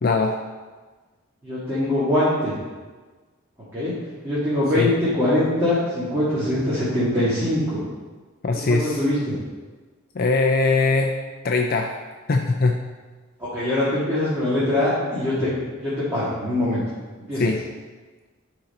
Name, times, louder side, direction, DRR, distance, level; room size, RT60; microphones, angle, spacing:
voice 1, 0.0-0.4 4.7-4.9 8.4-9.0 10.1-11.2 11.4-11.9 12.3-12.8 17.3-17.6, left 3 dB, 45° left, 2 dB, 0.4 m, -21 dB
voice 2, 1.4-2.6 3.7-3.9 4.2-7.8 8.7-9.4 13.4-15.5 15.8-16.8 17.3-17.4, left 1 dB, 10° right, -11 dB, 1.9 m, -22 dB
10.5 x 4.0 x 4.2 m, 1.3 s
head